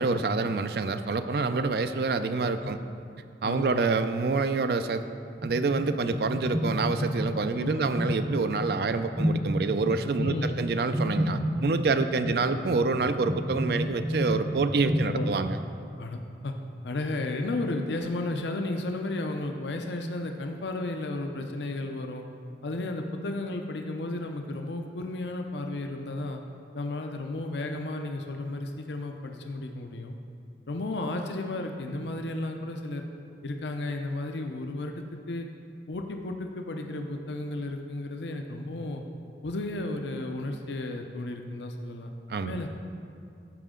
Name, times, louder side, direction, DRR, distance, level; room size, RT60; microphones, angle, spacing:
voice 1, 0.0-2.8 3.4-5.0 5.4-15.6 42.3-42.6, right 4 dB, 60° right, 10 dB, 0.4 m, -27 dB
voice 2, 3.4-3.8 7.5-7.9 10.2-10.6 12.2-12.6 15.1-15.4 16.0-16.5 16.8-22.3 22.6-26.4 26.7-30.2 30.7-33.0 33.4-35.5 35.9-39.0 39.4-42.1 42.4-42.7, left 2 dB, 80° left, 4 dB, 0.6 m, -33 dB
sound 1, 5.4-15.5, equal, 10° right, 0.5 m, -31 dB
14.0 x 5.1 x 3.7 m, 2.4 s
head